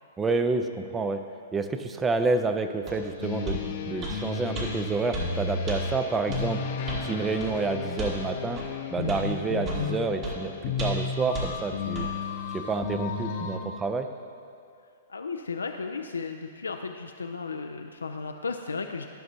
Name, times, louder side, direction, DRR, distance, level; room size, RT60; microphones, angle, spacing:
voice 1, 0.2-1.2 1.5-6.6 7.0-8.6 8.9-10.5 10.8-12.1 12.5-14.1, right 3 dB, 15° right, 8 dB, 0.4 m, -28 dB
sound 1, 2.9-3.0 3.5-3.6 4.0-4.2 4.6-4.7 5.1-5.3 5.7-5.8 6.3-6.5 6.9-7.1 7.4-7.5 8.0-8.2 8.6-8.7 9.1-9.2 9.6-9.9 10.2-10.4 10.8-11.1 11.3-11.5 12.0-12.1, right 1 dB, 35° right, 1.6 m, -33 dB
sound 2, 3.2-13.6, left 5 dB, 50° left, 0.6 m, -33 dB
voice 2, 13.1-13.7 15.1-19.1, left 4 dB, 85° left, 5 dB, 0.3 m, -35 dB
12.0 x 6.0 x 2.7 m, 2.4 s
figure-of-eight pair, 115°, 0 cm